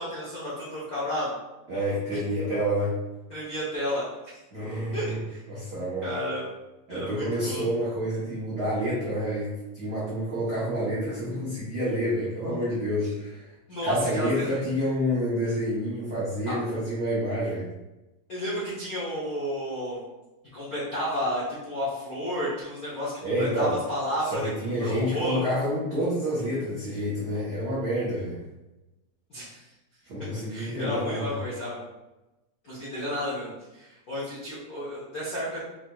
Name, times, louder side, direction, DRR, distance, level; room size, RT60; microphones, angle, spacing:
voice 1, 0.0-1.3 3.3-4.1 4.9-5.4 6.0-6.4 6.9-7.7 13.7-14.6 16.5-16.6 18.3-20.0 20.5-24.5 24.8-25.4 29.3-29.6 30.5-31.8 32.6-35.6, equal, 75° left, -9 dB, 0.8 m, -32 dB
voice 2, 1.7-3.0 4.5-5.2 5.5-6.2 6.9-13.4 13.8-17.6 23.2-23.7 24.2-28.4 30.0-31.3, equal, 90° right, -9 dB, 0.9 m, -28 dB
5.4 x 2.9 x 2.3 m, 1.0 s
omnidirectional pair, 3.3 m